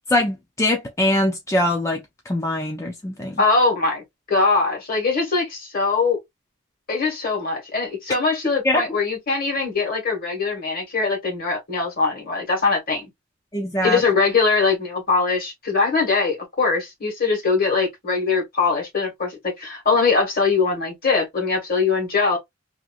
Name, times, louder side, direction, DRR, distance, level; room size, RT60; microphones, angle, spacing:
voice 1, 0.1-3.4 8.4-9.0 13.5-14.0, left 1 dB, 15° left, 0.4 m, -23 dB
voice 2, 3.4-6.2 6.9-13.1 13.8-22.4, left 4 dB, 50° left, 1.5 m, -22 dB
2.9 x 2.5 x 2.3 m
head